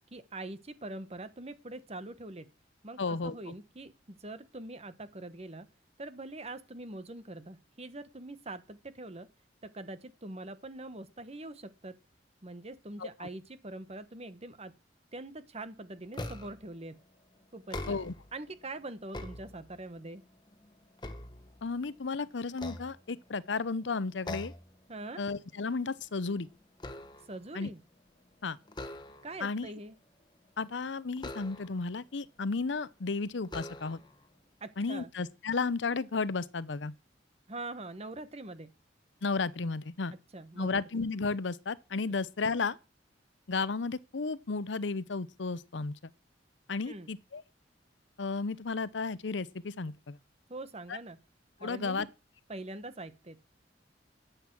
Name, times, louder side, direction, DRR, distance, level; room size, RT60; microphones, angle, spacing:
voice 1, 0.1-2.5 2.8-5.7 6.0-9.3 9.6-11.9 12.4-14.7 15.1-17.0 17.5-18.0 18.3-20.2 24.9-25.2 27.3-27.8 29.2-29.9 34.6-35.1 37.5-38.7 40.3-40.7 46.8-47.1 50.5-51.2 51.6-52.1 52.5-53.4, right 2 dB, 35° right, 1.2 m, -43 dB
voice 2, 3.0-3.5 13.2-13.3 17.9-18.1 21.6-24.5 25.2-26.5 27.5-27.7 28.4-28.6 29.4-29.7 30.6-34.0 34.8-36.9 39.2-40.1 40.6-42.8 43.5-46.1 46.7-47.4 48.2-50.2 50.9-51.0 51.6-52.1, left 4 dB, 80° left, 0.7 m, -33 dB
sound 1, 16.1-16.7 17.6-18.4 18.9-20.0 20.5-22.0 22.5-23.5 24.2-24.7 25.1-25.4 25.8-27.5 28.7-29.5 31.2-31.9 32.7-32.8 33.4-34.2, left 1 dB, 25° left, 1.4 m, -43 dB
12.0 x 8.2 x 6.1 m
head